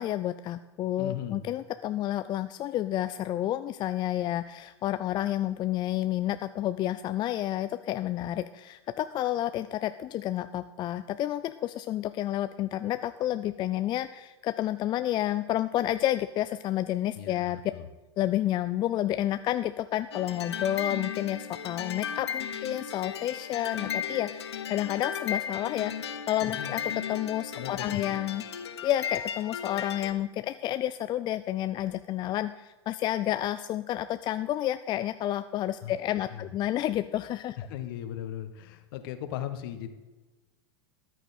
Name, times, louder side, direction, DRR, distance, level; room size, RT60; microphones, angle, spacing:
voice 1, 0.0-17.6 18.2-28.4 28.8-37.6, left 13 dB, 30° left, 12 dB, 0.4 m, -30 dB
voice 2, 1.0-1.4 17.2-17.9 26.5-26.7 27.5-28.0 35.8-35.9 36.3-36.5 37.6-39.9, left 11 dB, 60° left, 10 dB, 1.4 m, -38 dB
sound 1, 20.1-30.1, left 8 dB, 75° left, 0.9 m, -35 dB
14.0 x 9.9 x 4.3 m, 1.2 s
hypercardioid pair, 95°, 14 cm